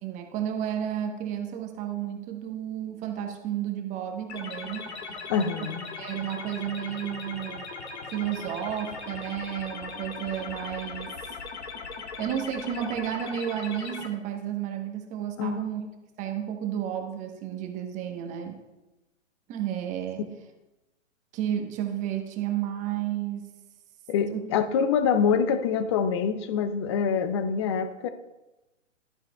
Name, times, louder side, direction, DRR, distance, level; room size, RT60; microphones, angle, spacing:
voice 1, 0.0-4.9 5.9-7.6 8.1-11.1 12.2-15.8 16.2-18.6 19.5-20.2 21.3-23.5 24.3-24.4, right 10 dB, 20° right, 4 dB, 1.1 m, -32 dB
sound 1, 4.3-14.1, left 4 dB, 60° left, 1.9 m, -39 dB
voice 2, 5.3-5.8 15.4-15.6 24.1-28.1, left 6 dB, 25° left, 11 dB, 0.5 m, -25 dB
11.5 x 9.7 x 2.3 m, 1.0 s
figure-of-eight pair, 125°, 37 cm